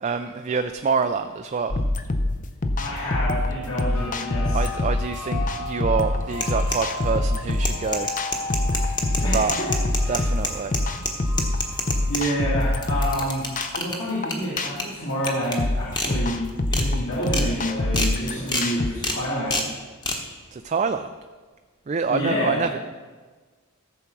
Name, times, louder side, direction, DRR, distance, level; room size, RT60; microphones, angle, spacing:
voice 1, 0.0-1.8 4.5-8.1 9.2-9.6 10.1-10.7 20.5-21.1 21.9-22.8, right 5 dB, 30° right, 7 dB, 0.3 m, -26 dB
sound 1, 1.7-18.9, left 2 dB, 35° left, 0.6 m, -25 dB
voice 2, 2.8-4.6 9.2-9.7 10.0-10.2 12.1-13.5 13.8-19.6 22.1-22.8, equal, 60° left, -8 dB, 2.6 m, -28 dB
sound 2, 3.9-13.7, left 2 dB, 80° left, 1.0 m, -37 dB
sound 3, 6.3-7.1 7.5-12.2 12.6-13.9 14.3-14.8 15.3-15.5 15.9-16.1 16.5-16.8 17.2-17.4 17.9-18.1 18.5-18.7 19.0-19.2 19.5-19.7 20.0-20.2, left 2 dB, 20° left, 1.1 m, -27 dB
14.5 x 7.1 x 4.6 m, 1.4 s
head